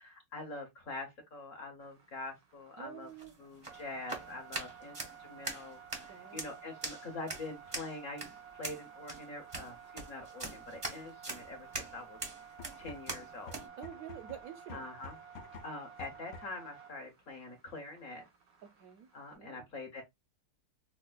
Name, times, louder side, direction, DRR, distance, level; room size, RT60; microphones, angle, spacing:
voice 1, 0.0-3.1 3.4-12.2 12.8-13.6 14.7-15.2 15.6-18.3 19.1-20.0, left 2 dB, 50° left, 1.1 m, -45 dB
sound 1, 1.8-19.4, right 8 dB, 90° right, 2.2 m, -54 dB
voice 2, 2.8-3.3 6.1-6.6 13.8-14.9 18.6-19.1 19.3-19.7, right 9 dB, 70° right, 0.9 m, -48 dB
sound 2, 3.0-13.7, right 2 dB, 35° right, 0.5 m, -43 dB
sound 3, 12.5-16.7, left 4 dB, 75° left, 1.2 m, -51 dB
4.9 x 2.1 x 2.2 m
omnidirectional pair, 1.9 m